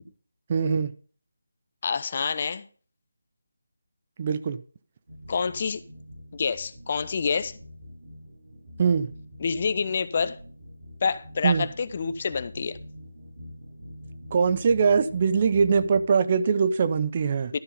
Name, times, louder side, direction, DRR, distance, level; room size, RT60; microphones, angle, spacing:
voice 1, 0.5-0.9 4.2-4.6 8.8-9.1 11.4-11.7 14.3-17.5, right 5 dB, 35° right, 0.5 m, -22 dB
voice 2, 1.8-2.7 5.3-5.8 6.3-7.6 9.4-10.4 11.0-12.8 17.5-17.6, left 5 dB, 40° left, 0.6 m, -27 dB
sound 1, 5.1-16.0, left 1 dB, 70° right, 6.5 m, -45 dB
12.5 x 5.6 x 5.2 m
figure-of-eight pair, 165°, 0 cm